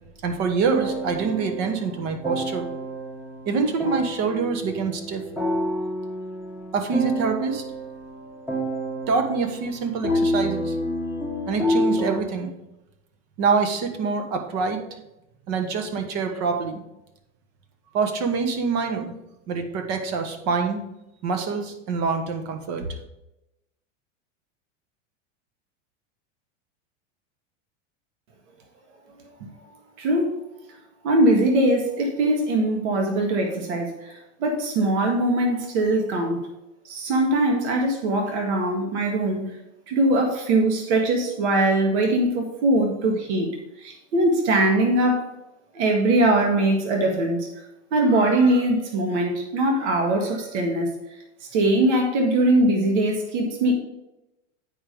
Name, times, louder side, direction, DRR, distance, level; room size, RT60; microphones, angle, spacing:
voice 1, 0.2-2.7 3.4-5.2 6.7-7.6 9.1-10.8 11.5-12.5 13.4-14.8 15.5-16.8 17.9-19.1 19.5-20.8 21.2-22.9, right 5 dB, 45° right, 6 dB, 1.3 m, -25 dB
sound 1, 0.7-12.2, equal, 5° right, 1.2 m, -28 dB
voice 2, 30.0-30.4 31.0-36.5 36.9-39.6 39.9-43.5 43.8-45.3 45.7-47.5 47.9-50.9 51.5-53.7, right 1 dB, 65° right, 2 dB, 1.8 m, -21 dB
8.6 x 5.0 x 5.2 m, 0.91 s
supercardioid pair, 135°, 38 cm